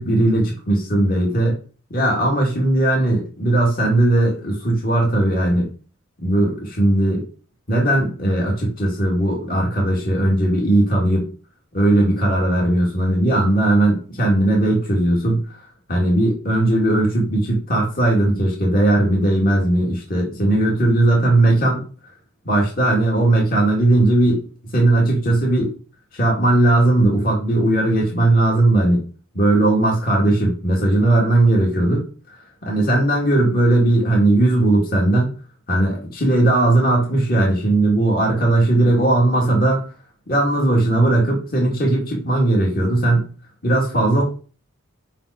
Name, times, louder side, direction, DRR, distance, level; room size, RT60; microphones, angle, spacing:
voice 1, 0.0-1.6 1.9-5.7 6.2-7.2 7.7-11.3 11.7-15.6 15.9-21.8 22.5-24.4 24.7-25.7 26.1-29.0 29.3-35.3 35.7-39.8 40.3-43.3 43.6-44.2, right 1 dB, 45° left, -2 dB, 2.3 m, -18 dB
5.8 x 5.4 x 6.5 m, 0.38 s
head